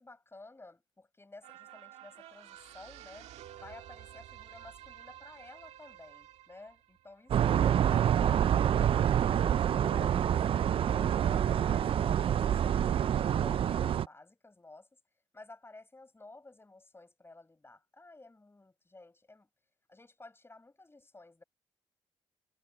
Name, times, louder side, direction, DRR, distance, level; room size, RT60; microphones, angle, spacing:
voice 1, 0.0-3.3 3.6-10.4 10.8-14.9 15.3-19.5 19.9-21.4, left 2 dB, 20° left, 6.0 m, -53 dB
sound 1, 1.4-8.1 8.5-8.6, right 12 dB, 85° right, 1.8 m, -52 dB
sound 2, 7.3-14.1, right 9 dB, 55° right, 0.4 m, -27 dB
cardioid pair, 65°, 11 cm